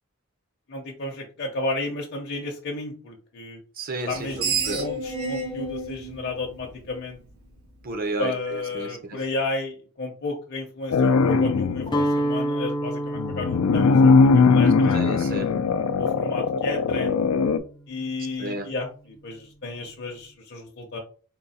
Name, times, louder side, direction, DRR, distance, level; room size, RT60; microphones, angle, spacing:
voice 1, 0.7-3.6 4.1-7.2 8.2-15.1 16.0-17.2 17.9-21.0, left 2 dB, 50° left, 0.7 m, -32 dB
voice 2, 3.7-4.3 4.6-4.9 7.8-9.2 14.9-15.6 18.4-18.7, right 2 dB, 45° right, 0.7 m, -32 dB
Screech, 4.1-7.3, right 3 dB, 85° right, 1.0 m, -30 dB
sound 1, 10.9-12.0 13.2-17.6, left 4 dB, 85° left, 0.4 m, -20 dB
Guitar, 11.9-17.9, equal, 20° left, 0.4 m, -31 dB
3.8 x 2.3 x 4.1 m
head